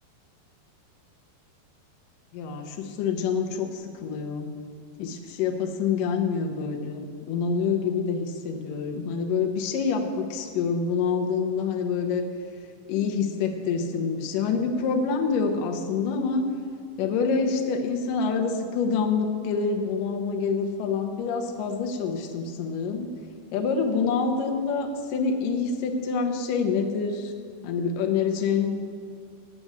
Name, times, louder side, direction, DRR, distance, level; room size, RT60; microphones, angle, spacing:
voice 1, 2.3-4.5 5.0-12.2 12.9-16.5 17.0-23.1 23.5-27.3 27.6-28.7, left 5 dB, 70° left, 3 dB, 2.2 m, -26 dB
9.6 x 7.8 x 8.8 m, 2.1 s
omnidirectional pair, 4.7 m